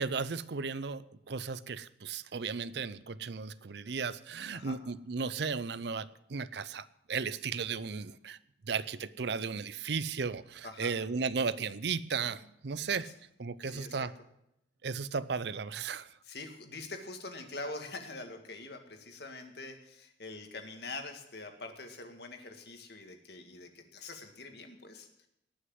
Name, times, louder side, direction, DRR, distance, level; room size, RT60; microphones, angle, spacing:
voice 1, 0.0-8.4 8.7-13.1 13.4-14.1 14.8-16.1, right 5 dB, 60° right, 17 dB, 0.6 m, -35 dB
voice 2, 10.6-10.9 13.0-13.1 13.6-14.1 16.2-25.3, left 3 dB, 55° left, 5 dB, 1.9 m, -44 dB
19.0 x 6.4 x 7.7 m, 0.82 s
head